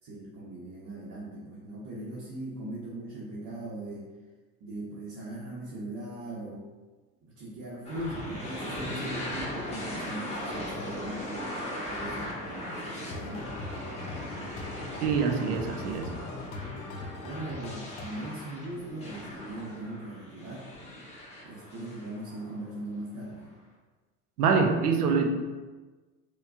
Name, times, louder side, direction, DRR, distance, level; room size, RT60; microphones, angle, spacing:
voice 1, 0.0-4.1 4.6-6.7 7.2-13.5 17.2-20.7 21.4-23.5, right 1 dB, 50° right, -6 dB, 0.9 m, -40 dB
sound 1, 7.8-22.8, left 1 dB, 15° left, 1.0 m, -39 dB
sound 2, 13.0-18.1, left 3 dB, 45° left, 0.6 m, -41 dB
voice 2, 15.0-16.1 24.4-25.3, right 5 dB, 90° right, 4 dB, 0.5 m, -25 dB
4.4 x 2.3 x 2.3 m, 1.3 s
hypercardioid pair, 75°, 44 cm